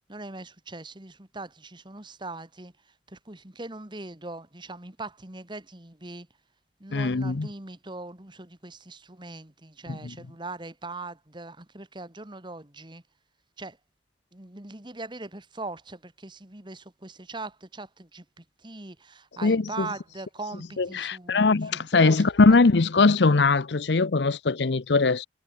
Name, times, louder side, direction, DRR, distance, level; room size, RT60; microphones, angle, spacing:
voice 1, 0.1-6.3 6.8-13.0 13.6-13.8 14.3-21.6 21.9-22.2, right 2 dB, 25° right, 2.0 m, -40 dB
voice 2, 6.9-7.5 9.9-10.0 19.4-19.9 20.8-25.3, left 3 dB, 80° left, 0.7 m, -21 dB
head